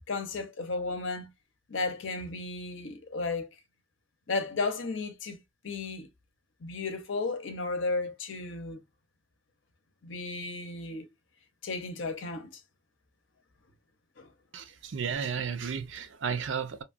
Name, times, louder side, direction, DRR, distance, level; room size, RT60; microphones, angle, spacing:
voice 1, 0.1-1.3 1.7-3.5 4.3-6.1 6.6-8.8 10.0-11.1 11.6-12.6 14.2-14.3, left 3 dB, 80° left, 0.7 m, -34 dB
voice 2, 14.5-16.8, right 6 dB, 75° right, 0.5 m, -33 dB
3.0 x 2.3 x 2.4 m
head